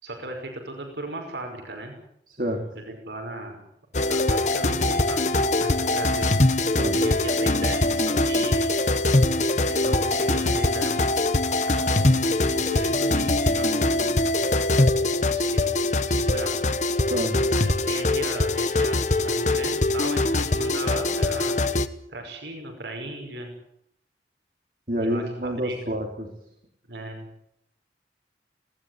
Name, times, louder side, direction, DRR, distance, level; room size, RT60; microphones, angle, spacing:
voice 1, 0.0-2.0 2.8-3.6 4.1-6.4 7.0-8.7 9.7-11.2 11.5-14.5 15.0-16.6 17.4-21.6 22.1-23.5 25.0-25.8 26.9-27.3, right 2 dB, 80° right, 3 dB, 5.6 m, -36 dB
voice 2, 2.3-2.6 6.8-7.0 17.1-17.4 24.9-26.3, equal, 50° right, 2 dB, 3.1 m, -28 dB
sound 1, 3.9-21.9, left 2 dB, 40° left, 1.1 m, -23 dB
20.0 x 18.0 x 9.5 m, 0.76 s
head